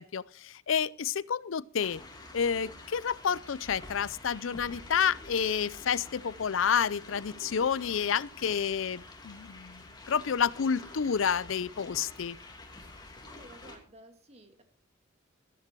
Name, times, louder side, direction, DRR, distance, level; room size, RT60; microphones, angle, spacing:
voice 1, 0.0-2.0 2.3-12.4, left 7 dB, 80° left, 0.5 m, -30 dB
sound 1, 1.8-13.8, left 2 dB, 20° left, 2.9 m, -48 dB
voice 2, 13.3-14.6, right 1 dB, 35° right, 2.4 m, -53 dB
13.5 x 13.5 x 4.6 m
head